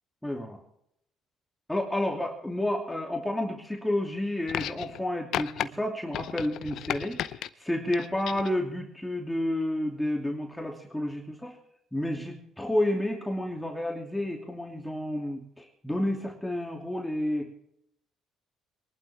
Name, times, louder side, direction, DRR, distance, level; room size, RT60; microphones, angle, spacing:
voice 1, 0.2-0.6 1.7-11.6 11.9-17.5, left 1 dB, 5° left, 0 dB, 2.7 m, -30 dB
sound 1, 4.5-5.0 5.3-5.7 6.1-7.5 7.9-8.6 9.6-9.7, left 11 dB, 70° left, 0.7 m, -33 dB
23.0 x 11.5 x 3.5 m, 0.74 s
supercardioid pair, 85°, 0 cm